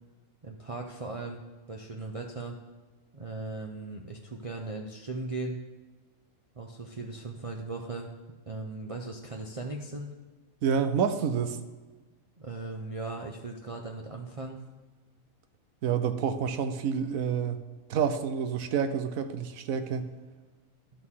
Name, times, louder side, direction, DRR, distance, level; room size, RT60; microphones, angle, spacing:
voice 1, 0.4-1.4 1.7-2.6 3.1-5.6 6.6-8.1 8.5-10.1 12.4-14.6, right 3 dB, 35° right, 0 dB, 0.5 m, -38 dB
voice 2, 10.6-11.6 15.8-17.6 17.9-20.1, right 7 dB, 75° right, 9 dB, 1.1 m, -28 dB
11.5 x 6.3 x 3.7 m, 1.3 s
omnidirectional pair, 1.5 m